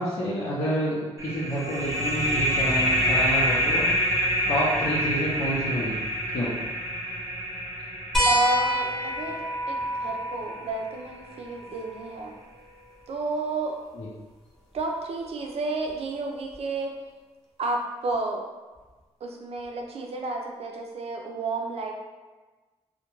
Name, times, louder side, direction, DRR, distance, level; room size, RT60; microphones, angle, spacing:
voice 1, 0.0-3.9 4.5-6.0 6.3-6.5 13.9-14.1, equal, 65° left, -10 dB, 0.7 m, -28 dB
sound 1, 1.2-10.5, equal, 30° right, 0.7 m, -27 dB
sound 2, 8.1-13.2 14.8-14.9 16.5-16.6, equal, 5° left, 0.7 m, -29 dB
voice 2, 8.3-12.3 13.1-13.8 14.7-16.9 17.6-18.5 19.2-21.9, right 2 dB, 65° right, 1 dB, 0.4 m, -31 dB
2.3 x 2.1 x 3.0 m, 1.3 s
cardioid pair, 90°, 11 cm